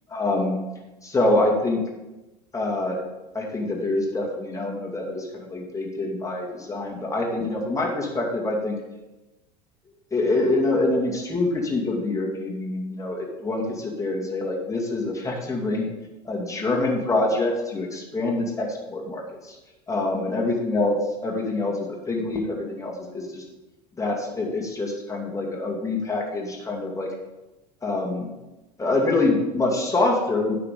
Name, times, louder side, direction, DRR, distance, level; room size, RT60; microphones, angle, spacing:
voice 1, 0.1-0.6 1.0-1.8 2.5-3.0 3.3-8.8 10.1-15.9 16.3-19.6 19.9-23.4 24.0-27.1 27.8-28.3 28.8-30.6, left 2 dB, 15° left, -1 dB, 2.3 m, -25 dB
9.7 x 5.9 x 5.3 m, 1.1 s
hypercardioid pair, 75°, 21 cm